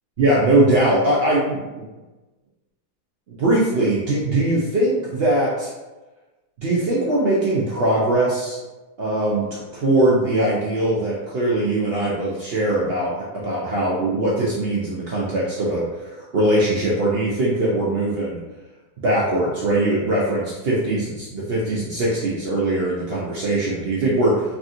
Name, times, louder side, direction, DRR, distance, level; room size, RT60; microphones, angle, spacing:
voice 1, 0.2-1.9 3.4-5.7 6.6-8.6 9.0-18.4 19.0-24.3, right 1 dB, 75° right, -5 dB, 0.5 m, -21 dB
3.4 x 2.6 x 2.4 m, 1.1 s
omnidirectional pair, 1.7 m